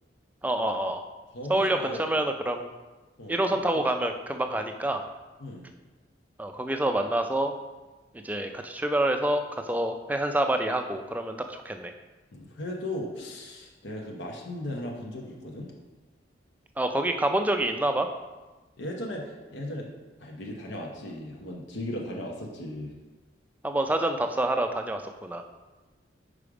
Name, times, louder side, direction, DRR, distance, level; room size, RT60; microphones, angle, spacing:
voice 1, 0.4-1.0 1.5-2.7 3.3-5.0 6.4-7.5 8.2-11.9 16.8-18.1 23.6-25.4, right 1 dB, 10° right, 5 dB, 0.3 m, -27 dB
voice 2, 1.3-2.1 3.2-3.4 3.7-3.8 5.4-5.6 12.3-15.7 18.8-19.9 20.2-22.9, left 1 dB, 75° left, -1 dB, 0.9 m, -37 dB
5.1 x 4.9 x 4.9 m, 1.2 s
head